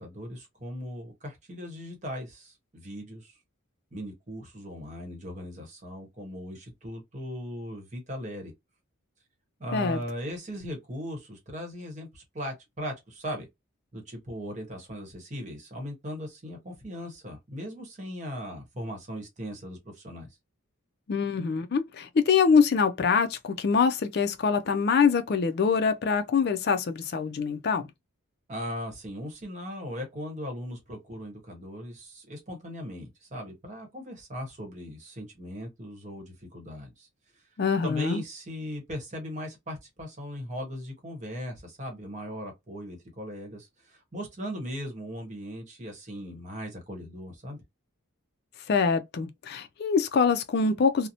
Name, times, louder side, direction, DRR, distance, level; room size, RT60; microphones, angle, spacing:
voice 1, 0.0-3.4 3.9-8.5 9.6-13.5 13.9-20.3 28.5-37.1 37.3-37.5 37.8-47.6, equal, 35° right, 0.9 m, -38 dB
voice 2, 21.1-27.8 37.6-38.2 48.7-51.1, left 5 dB, 50° left, 0.4 m, -24 dB
2.8 x 2.0 x 2.5 m
head